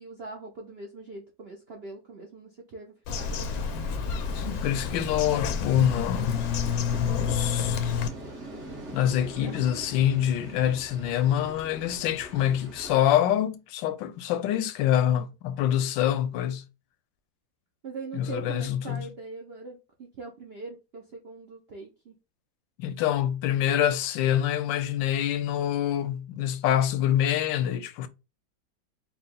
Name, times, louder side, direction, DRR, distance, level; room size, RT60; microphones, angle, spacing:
voice 1, 0.0-3.7 9.4-9.6 10.5-10.6 15.0-15.3 17.8-22.2, right 3 dB, 70° right, 0.5 m, -42 dB
Bird vocalization bird call bird song, 3.1-8.1, left 6 dB, 70° left, 0.9 m, -29 dB
sound 1, 3.1-13.0, right 1 dB, 40° right, 1.4 m, -43 dB
voice 2, 4.3-6.4 6.9-7.8 8.9-16.6 18.1-19.0 22.8-28.1, left 11 dB, 85° left, 1.3 m, -26 dB
4.8 x 2.3 x 3.6 m
omnidirectional pair, 2.0 m